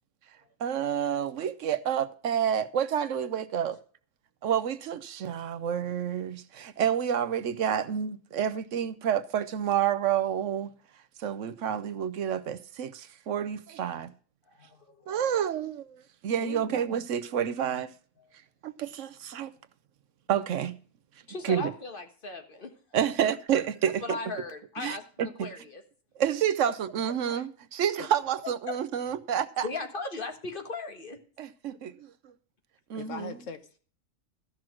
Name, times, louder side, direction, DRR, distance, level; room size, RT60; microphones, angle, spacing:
voice 1, 0.6-3.8 4.4-10.7 11.2-14.1 15.1-17.9 18.6-19.5 20.3-20.7 21.4-21.7 22.9-24.2 24.8-25.5 26.2-29.7 31.4-32.3 32.9-33.4, right 9 dB, 70° right, 1.0 m, -29 dB
voice 2, 14.5-15.1 16.4-16.8 21.3-22.7 23.5-23.6 24.0-25.1 25.4-25.8 28.7-28.8 29.6-31.2, left 3 dB, 40° left, 1.8 m, -37 dB
voice 3, 27.1-27.5 28.0-28.1 33.0-33.8, left 5 dB, 75° left, 1.4 m, -41 dB
14.0 x 6.0 x 6.2 m
omnidirectional pair, 1.3 m